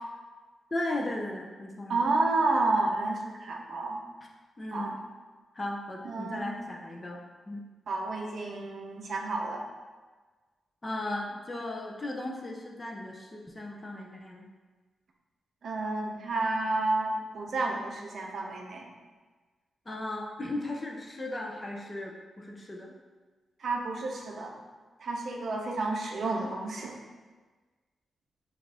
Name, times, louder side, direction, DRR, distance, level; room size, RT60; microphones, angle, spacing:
voice 1, 0.7-2.1 4.6-5.0 5.5-7.2 7.5-7.6 10.8-14.5 19.9-22.9, left 1 dB, 20° left, 0 dB, 0.5 m, -36 dB
voice 2, 1.9-4.0 4.7-5.0 6.0-6.5 7.9-9.6 15.6-18.8 23.6-24.6 25.0-27.0, right 2 dB, 55° right, 1 dB, 0.6 m, -30 dB
6.1 x 2.4 x 3.3 m, 1.4 s
wide cardioid pair, 150°, 0 cm